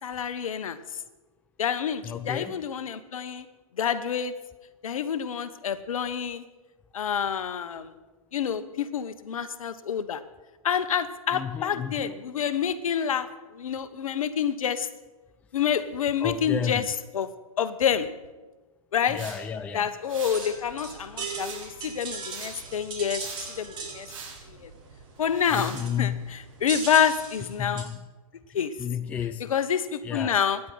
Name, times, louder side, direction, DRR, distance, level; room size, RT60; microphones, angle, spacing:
voice 1, 0.0-1.0 1.6-3.5 3.8-4.3 4.8-6.4 6.9-8.0 8.3-10.2 10.6-14.9 15.5-16.8 17.1-17.3 17.6-18.1 18.9-19.2 19.7-24.1 24.5-24.7 25.2-27.9 28.5-28.7 29.5-30.6, left 8 dB, 70° left, 12 dB, 1.1 m, -28 dB
voice 2, 2.0-2.6 11.3-12.2 16.2-16.9 19.1-19.9 25.5-26.4 27.6-28.0 28.8-29.5 30.0-30.4, left 8 dB, 10° left, 10 dB, 0.4 m, -32 dB
sound 1, 19.2-19.4 20.1-20.5 21.3-21.8 22.2-22.6 23.2-23.5 24.1-24.4 25.3-25.9, right 5 dB, 65° right, 5.8 m, -42 dB
sound 2, 20.1-27.8, right 4 dB, 25° right, 3.9 m, -39 dB
25.5 x 9.9 x 3.9 m, 1.2 s
hypercardioid pair, 130°, 18 cm